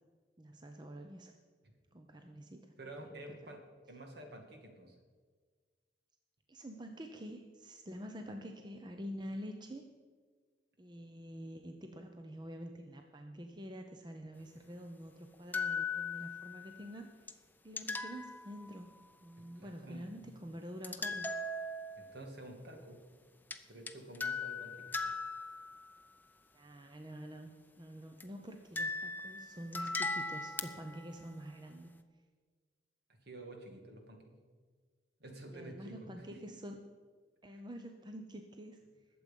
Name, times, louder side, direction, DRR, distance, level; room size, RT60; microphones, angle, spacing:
voice 1, 0.4-1.3 1.9-2.7 3.1-3.5 6.5-9.8 10.8-17.4 17.6-21.3 26.5-31.9 35.5-36.8 37.4-38.8, equal, 25° right, 4 dB, 0.7 m, -47 dB
voice 2, 2.8-3.6 3.9-5.0 19.3-20.0 22.0-23.0 23.6-24.9 33.1-34.2 35.2-36.6, right 1 dB, 60° right, 3 dB, 2.2 m, -50 dB
sound 1, 15.5-16.8 17.3-17.4 17.8-18.9 20.8-22.1 23.5-23.6 23.9-25.9 28.2-28.3 28.8-31.1, left 3 dB, 10° left, 0.6 m, -39 dB
20.5 x 7.7 x 5.4 m, 1.6 s
head